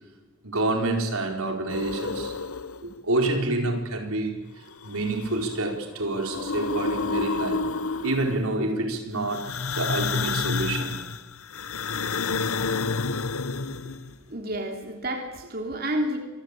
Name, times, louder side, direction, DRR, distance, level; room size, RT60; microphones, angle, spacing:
voice 1, 0.4-2.3 2.8-7.6 8.0-10.9, right 2 dB, 90° right, 3 dB, 4.8 m, -28 dB
sound 1, 1.7-3.0 4.7-5.6 6.0-8.5 9.3-14.1, left 4 dB, 85° left, 1.0 m, -30 dB
voice 2, 14.3-16.2, right 1 dB, 45° right, 3 dB, 3.2 m, -30 dB
26.5 x 21.5 x 8.5 m, 1.2 s
head